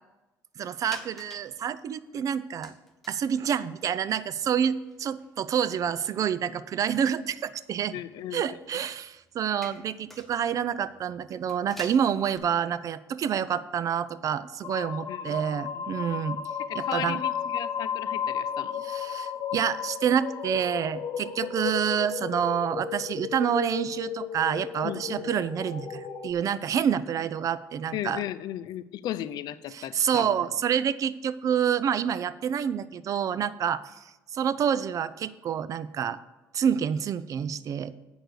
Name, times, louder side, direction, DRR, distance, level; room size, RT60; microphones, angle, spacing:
voice 1, 0.6-2.7 3.1-7.9 8.3-16.4 16.7-17.2 18.8-28.2 29.7-33.9 34.3-36.2 36.5-38.0, right 8 dB, 50° right, 16 dB, 0.5 m, -28 dB
sound 1, 0.8-1.6 1.9-2.0 2.6-3.4 3.8-3.9 4.1-6.9 7.3-12.4, left 1 dB, 5° left, 1.2 m, -49 dB
voice 2, 7.9-8.5 15.1-15.9 16.6-18.8 24.8-25.4 27.9-30.4, left 12 dB, 70° left, 14 dB, 0.5 m, -36 dB
sound 2, 14.6-26.3, left 7 dB, 45° left, 1.1 m, -34 dB
8.0 x 6.2 x 6.6 m, 1.1 s
cardioid pair, 110°, 7 cm